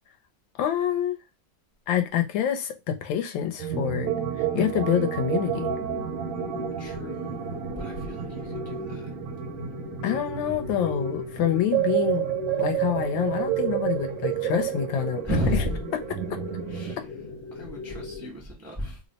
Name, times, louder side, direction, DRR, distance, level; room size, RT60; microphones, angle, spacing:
voice 1, 0.6-1.2 1.9-4.1 4.4-5.7 10.0-12.2 12.6-15.2, left 10 dB, 75° left, 1.3 m, -26 dB
sound 1, 3.6-17.0, right 12 dB, 85° right, 1.4 m, -30 dB
sound 2, 5.4-18.3, left 3 dB, 50° left, 0.8 m, -38 dB
voice 2, 6.8-9.2 15.2-15.8 16.7-17.2 17.5-19.0, equal, 15° right, 0.5 m, -33 dB
3.2 x 2.0 x 3.9 m
omnidirectional pair, 2.2 m